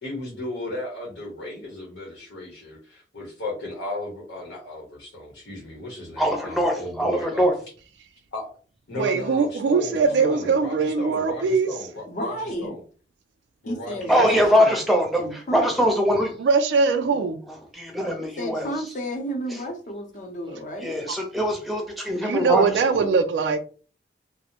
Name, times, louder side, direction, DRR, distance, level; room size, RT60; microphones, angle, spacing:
voice 1, 0.0-7.5 8.3-8.5 8.9-12.8 13.6-14.4, left 1 dB, 85° left, 0.8 m, -35 dB
voice 2, 6.2-7.5 14.1-16.4 17.1-17.2 17.5-18.7 19.5-19.6 20.8-23.1, equal, ahead, 0.6 m, -23 dB
voice 3, 9.0-11.7 16.4-17.4 21.1-21.2 22.2-23.6, right 5 dB, 75° right, 0.3 m, -21 dB
voice 4, 10.1-10.5 12.1-12.7 13.7-14.8 15.2-15.7 18.2-20.9, equal, 45° left, 0.6 m, -32 dB
2.5 x 2.0 x 2.8 m
head